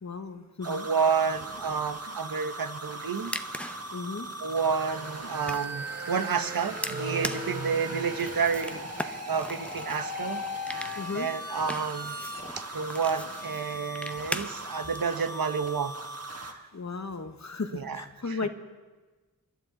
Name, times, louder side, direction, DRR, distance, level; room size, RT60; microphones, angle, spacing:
voice 1, 0.0-0.9 3.9-4.3 10.9-11.3 16.7-18.5, left 4 dB, 50° left, 8 dB, 1.1 m, -35 dB
sound 1, 0.6-16.5, right 2 dB, 45° right, 1.4 m, -39 dB
voice 2, 0.6-3.4 4.4-12.1 12.6-15.9 16.5-16.6 17.7-18.4, right 6 dB, 75° right, 10 dB, 0.9 m, -30 dB
sound 2, 1.3-2.1 3.5-3.7 4.6-12.4, left 2 dB, 25° right, 1.4 m, -41 dB
sound 3, 3.0-15.0, equal, 5° left, 0.7 m, -41 dB
29.5 x 11.5 x 3.8 m, 1.3 s
wide cardioid pair, 70°, 36 cm